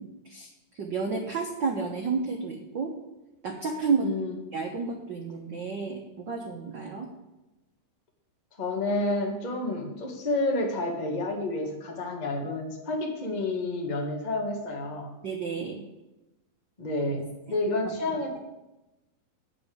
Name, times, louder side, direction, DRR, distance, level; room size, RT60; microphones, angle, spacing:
voice 1, 0.0-2.9 3.4-4.1 4.5-7.1 15.2-15.8 17.8-17.9, right 5 dB, 75° right, 0 dB, 1.0 m, -31 dB
voice 2, 4.0-4.4 8.5-15.1 16.8-18.4, left 2 dB, 25° left, 0 dB, 0.8 m, -30 dB
9.0 x 6.9 x 8.5 m, 0.99 s
omnidirectional pair, 3.8 m